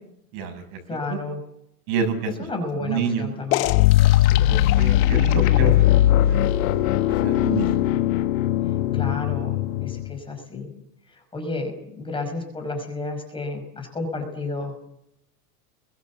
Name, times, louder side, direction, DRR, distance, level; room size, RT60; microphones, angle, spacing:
voice 1, 0.3-0.6 1.1-1.2 1.9-2.3 2.8-3.3 4.5-6.5 7.1-8.0, right 5 dB, 45° right, 6 dB, 7.0 m, -28 dB
voice 2, 0.9-1.4 2.3-3.8 4.2-4.4 8.9-10.7 11.1-14.7, left 3 dB, 10° left, 3 dB, 5.7 m, -31 dB
sound 1, 3.5-10.1, left 14 dB, 55° left, 1.6 m, -19 dB
28.5 x 22.5 x 7.4 m, 0.79 s
supercardioid pair, 155°, 48 cm